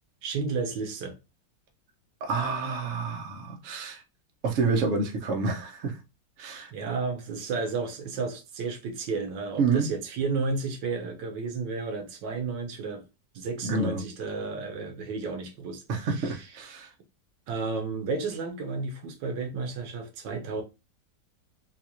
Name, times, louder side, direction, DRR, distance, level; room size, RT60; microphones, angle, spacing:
voice 1, 0.2-1.2 6.4-13.0 13.3-16.4 17.5-20.6, right 4 dB, 80° right, 1.5 m, -32 dB
voice 2, 2.2-4.0 4.4-6.0 6.4-6.7 9.6-9.9 13.6-14.1 15.9-16.9, right 4 dB, 55° right, 1.0 m, -28 dB
4.0 x 2.3 x 2.9 m
omnidirectional pair, 2.0 m